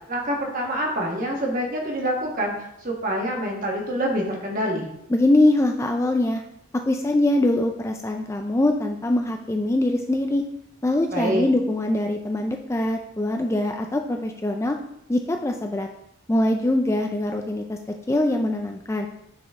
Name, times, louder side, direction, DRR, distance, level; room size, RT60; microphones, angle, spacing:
voice 1, 0.1-4.9 11.1-11.5, equal, 40° right, 0 dB, 1.5 m, -26 dB
voice 2, 5.1-6.4 6.7-10.4 10.8-14.8 15.1-15.9 16.3-17.8 18.1-19.1, left 1 dB, 15° left, 3 dB, 0.3 m, -23 dB
9.1 x 4.1 x 3.6 m, 0.78 s
head